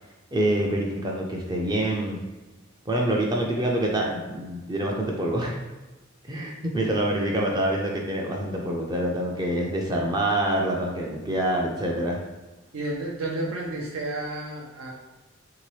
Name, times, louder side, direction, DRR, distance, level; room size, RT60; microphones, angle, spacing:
voice 1, 0.3-2.2 2.9-5.5 6.3-12.2, right 1 dB, 20° right, -1 dB, 0.4 m, -26 dB
voice 2, 12.7-14.9, right 2 dB, 80° right, -2 dB, 0.5 m, -31 dB
2.9 x 2.8 x 3.1 m, 1.2 s
head